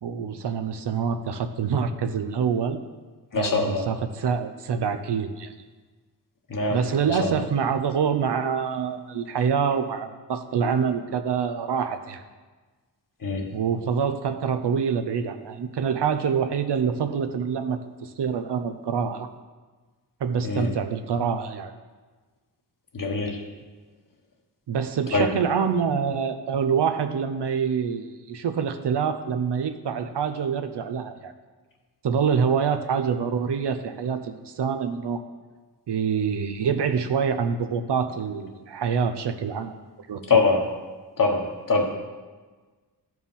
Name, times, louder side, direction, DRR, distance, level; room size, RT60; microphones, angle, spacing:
voice 1, 0.0-2.8 3.3-5.5 6.7-12.2 13.5-19.3 20.2-21.7 24.7-31.3 32.0-35.2 35.9-39.7 40.1-40.4, right 6 dB, 85° right, 9 dB, 0.7 m, -26 dB
voice 2, 3.3-3.9 6.5-6.8 7.2-7.3 13.2-13.5 20.4-20.7 22.9-23.4 25.1-25.3 40.3-40.7 41.2-41.9, left 3 dB, 55° left, 2 dB, 1.3 m, -23 dB
13.0 x 4.6 x 5.5 m, 1.3 s
wide cardioid pair, 120°, 40 cm